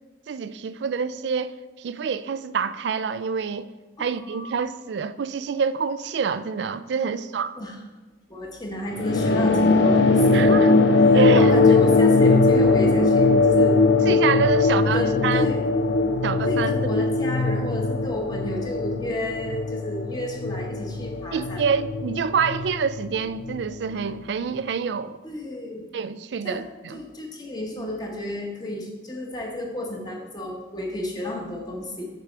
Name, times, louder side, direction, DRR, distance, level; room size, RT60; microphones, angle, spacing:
voice 1, 0.3-1.5 1.8-3.7 4.0-7.5 10.3-10.9 11.1-11.5 14.1-15.5 16.2-16.7 21.3-25.2 25.9-27.0, right 6 dB, 75° right, 0.4 m, -26 dB
voice 2, 4.0-4.5 7.5-7.8 8.3-10.6 11.3-13.8 14.6-14.7 14.9-15.6 16.4-21.6 25.2-25.8 26.4-26.7 26.9-32.1, left 1 dB, 20° left, 1.1 m, -31 dB
sound 1, 9.0-23.8, left 3 dB, 75° left, 0.5 m, -20 dB
6.7 x 6.1 x 4.5 m
head